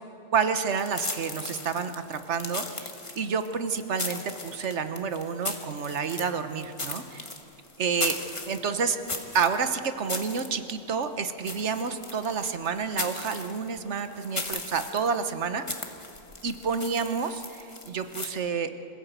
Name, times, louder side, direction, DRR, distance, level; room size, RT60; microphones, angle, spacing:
voice 1, 0.3-2.9 3.1-7.2 7.8-8.2 8.5-9.0 9.3-15.7 16.4-18.7, right 6 dB, 60° right, 9 dB, 1.4 m, -29 dB
sound 1, 0.7-18.3, left 2 dB, 25° left, 1.5 m, -38 dB
26.5 x 15.5 x 8.1 m, 2.7 s
omnidirectional pair, 1.4 m